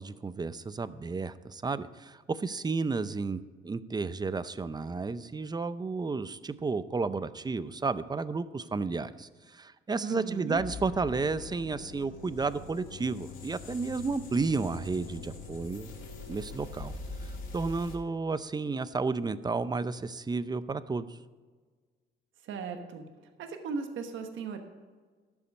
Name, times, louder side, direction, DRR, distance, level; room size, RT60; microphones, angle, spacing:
voice 1, 0.0-15.9 16.3-17.0 17.2-21.2, right 4 dB, 20° right, 15 dB, 0.5 m, -32 dB
voice 2, 10.0-10.6 22.4-23.1 23.4-24.6, right 5 dB, 80° right, 6 dB, 1.2 m, -37 dB
sound 1, 10.5-18.0, left 3 dB, 90° left, 2.3 m, -43 dB
12.5 x 7.1 x 5.3 m, 1.4 s
cardioid pair, 90°, 20 cm